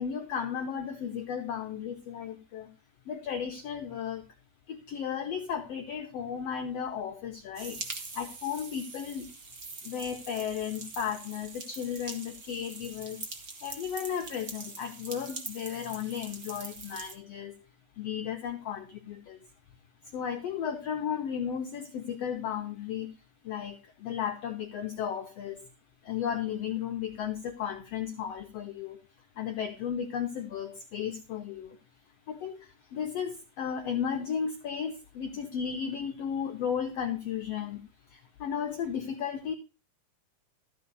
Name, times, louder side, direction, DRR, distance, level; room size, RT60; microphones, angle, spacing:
voice 1, 0.0-2.7 3.1-4.2 4.7-7.8 8.1-9.3 9.8-13.2 13.6-17.6 18.0-19.4 20.0-23.1 23.4-25.6 26.0-29.0 29.4-31.8 32.3-37.8 38.1-39.5, left 8 dB, 80° left, 5 dB, 1.4 m, -34 dB
sound 1, 7.5-17.1, right 3 dB, 50° right, 1.0 m, -43 dB
13.5 x 4.7 x 6.8 m, 0.33 s
omnidirectional pair, 4.0 m